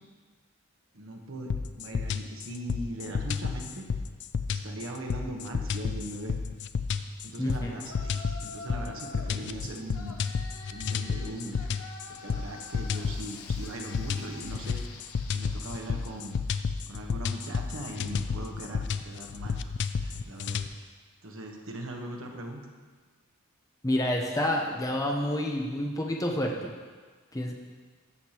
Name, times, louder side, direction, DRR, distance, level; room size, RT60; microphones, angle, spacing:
voice 1, 0.9-3.8 4.5-6.4 7.2-10.2 10.7-11.7 12.1-14.8 15.3-16.4 16.9-19.6 20.0-20.7 21.2-22.6, right 1 dB, 65° right, 1 dB, 1.2 m, -40 dB
sound 1, 1.5-20.7, left 5 dB, 55° left, 0.3 m, -31 dB
voice 2, 7.4-7.7 23.8-26.7 27.3-27.5, left 1 dB, 15° left, 0 dB, 0.7 m, -28 dB
Yell, 7.8-9.4 9.9-16.6, left 3 dB, 70° left, 0.8 m, -47 dB
14.0 x 6.5 x 2.9 m, 1.5 s
head